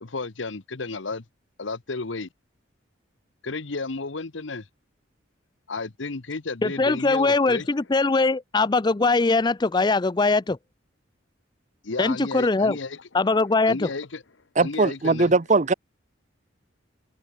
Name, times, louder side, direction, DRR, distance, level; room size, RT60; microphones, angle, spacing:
voice 1, 0.0-1.2 1.6-2.3 3.4-4.7 5.7-7.7 11.8-13.0 13.7-14.2 14.6-15.3, left 3 dB, 75° left, 1.1 m, -32 dB
voice 2, 6.6-10.6 12.0-12.8 13.1-13.9, left 3 dB, 20° left, 0.5 m, -21 dB
voice 3, 14.6-15.7, right 3 dB, 40° right, 0.7 m, -20 dB
head